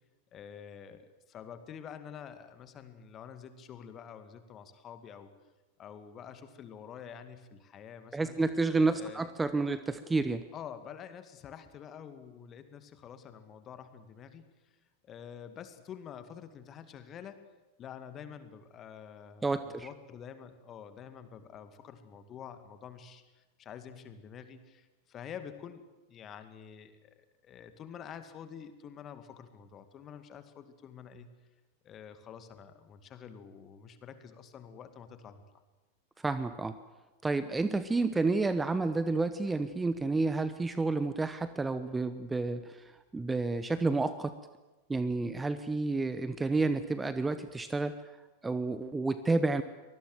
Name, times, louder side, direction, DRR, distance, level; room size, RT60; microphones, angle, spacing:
voice 1, 0.3-5.3 5.8-8.4 8.9-9.3 10.5-14.7 15.0-17.5 17.8-27.1 27.4-31.3 31.8-35.4, left 8 dB, 30° left, 10 dB, 2.2 m, -48 dB
voice 2, 8.1-10.4 19.4-19.9 36.2-36.7 37.2-42.8 43.1-44.3 44.9-47.9 48.4-49.6, right 3 dB, 10° right, 13 dB, 0.9 m, -30 dB
24.5 x 20.0 x 7.8 m, 1.1 s
figure-of-eight pair, 90°, 0 cm